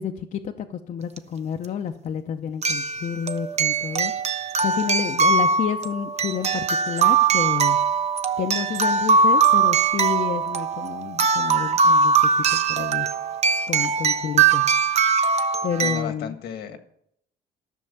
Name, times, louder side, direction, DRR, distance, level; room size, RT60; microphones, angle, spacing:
voice 1, 0.0-4.1 4.6-7.8 8.4-13.1 13.7-14.7 15.6-16.4, left 8 dB, 50° left, 4 dB, 0.7 m, -30 dB
sound 1, 1.2-1.3 2.6-16.0, right 5 dB, 40° right, 0.8 m, -21 dB
voice 2, 15.8-16.8, left 8 dB, 75° left, 8 dB, 1.5 m, -33 dB
13.0 x 6.3 x 6.9 m, 0.73 s
cardioid pair, 110°, 17 cm